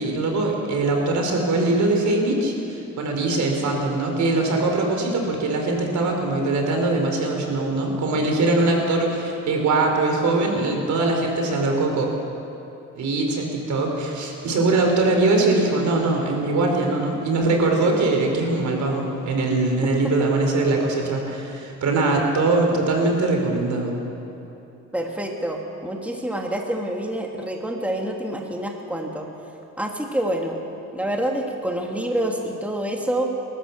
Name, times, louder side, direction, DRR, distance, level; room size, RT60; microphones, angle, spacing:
voice 1, 0.0-12.1 12.9-24.0, right 2 dB, 70° right, 2 dB, 4.5 m, -22 dB
voice 2, 24.9-29.3 29.8-30.6 30.9-33.3, right 1 dB, 5° right, 1 dB, 2.5 m, -27 dB
30.0 x 13.5 x 7.4 m, 3.0 s
cardioid pair, 90°, 30 cm